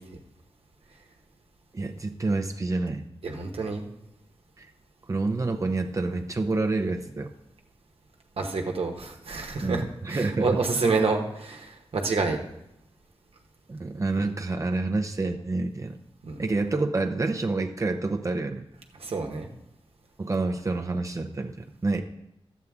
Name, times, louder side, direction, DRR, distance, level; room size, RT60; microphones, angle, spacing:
voice 1, 1.7-3.0 4.6-4.7 5.1-7.3 9.6-10.8 13.7-16.0 16.4-18.6 20.2-22.0, right 3 dB, 30° right, 4 dB, 0.6 m, -28 dB
voice 2, 3.2-3.8 8.4-9.8 10.1-12.4 16.2-16.4 19.0-19.5, right 4 dB, 75° right, 2 dB, 1.1 m, -28 dB
12.5 x 8.2 x 3.6 m, 0.84 s
wide cardioid pair, 115°, 10 cm